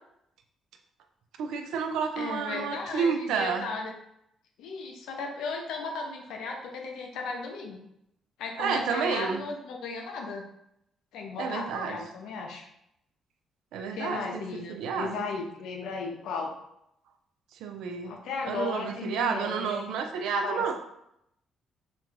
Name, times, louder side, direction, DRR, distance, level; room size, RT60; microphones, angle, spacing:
voice 1, 1.4-3.7 8.6-9.4 11.4-12.0 13.7-15.3 17.6-18.2 18.5-20.7, right 6 dB, 85° right, 5 dB, 0.3 m, -30 dB
voice 2, 2.2-3.9 4.6-7.8 8.4-10.4 11.1-12.6 13.9-16.5 18.1-19.9 20.4-20.6, left 4 dB, 85° left, 1 dB, 0.5 m, -35 dB
2.4 x 2.2 x 3.1 m, 0.78 s
cardioid pair, 90°, 0 cm